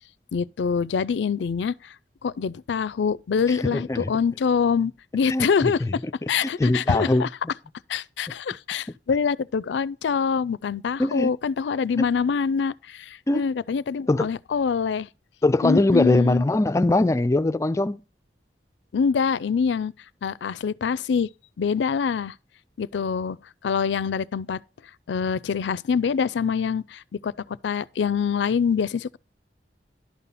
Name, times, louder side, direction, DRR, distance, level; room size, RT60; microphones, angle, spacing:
voice 1, 0.3-1.7 2.2-5.8 6.3-7.3 7.9-15.1 15.6-16.4 18.9-19.9 20.2-21.3 21.6-22.3 22.8-23.4 23.6-24.6 25.1-27.3 27.6-29.2, left 6 dB, 85° left, 0.4 m, -25 dB
voice 2, 3.5-4.1 5.3-6.0 6.4-7.3 11.0-11.3 12.0-12.1 13.3-13.5 14.1-14.3 15.4-18.0, left 2 dB, 15° left, 0.3 m, -22 dB
11.5 x 4.2 x 5.4 m
head